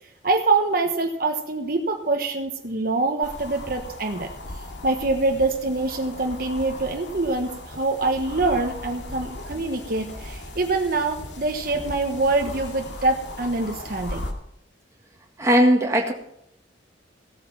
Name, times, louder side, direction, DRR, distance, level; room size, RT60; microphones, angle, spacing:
voice 1, 0.2-4.3 4.8-14.3, right 3 dB, 55° right, 4 dB, 1.2 m, -25 dB
sound 1, 3.2-14.3, left 1 dB, 80° left, 2.3 m, -37 dB
voice 2, 15.4-16.1, equal, 15° right, 1 dB, 1.8 m, -18 dB
16.5 x 8.6 x 5.8 m, 0.75 s
head